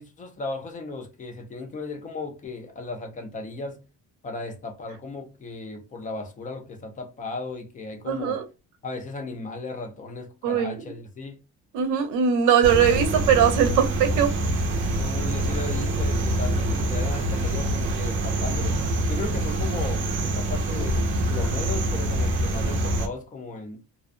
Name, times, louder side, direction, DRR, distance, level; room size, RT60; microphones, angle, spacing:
voice 1, 0.0-3.8 4.2-8.4 8.8-11.4 15.0-18.8 19.1-21.0 21.3-23.8, left 3 dB, 25° left, 0.4 m, -36 dB
voice 2, 8.1-8.4 10.4-10.8 11.7-14.3, right 8 dB, 90° right, 0.6 m, -20 dB
sound 1, 12.6-23.1, right 1 dB, 40° right, 0.5 m, -25 dB
2.5 x 2.1 x 2.4 m
cardioid pair, 175°, 30 cm